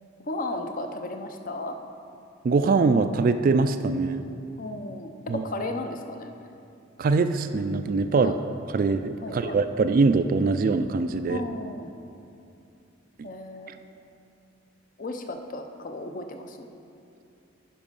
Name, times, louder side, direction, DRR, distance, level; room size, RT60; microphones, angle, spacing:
voice 1, 0.3-1.8 4.6-6.3 8.2-8.4 9.2-9.6 11.3-11.9 13.2-13.7 15.0-16.7, left 2 dB, 45° left, 5 dB, 0.6 m, -34 dB
voice 2, 2.4-4.2 5.3-5.4 7.0-8.3 8.7-11.4 13.2-13.3, right 4 dB, 45° right, 10 dB, 0.3 m, -23 dB
10.0 x 5.1 x 5.4 m, 2.6 s
head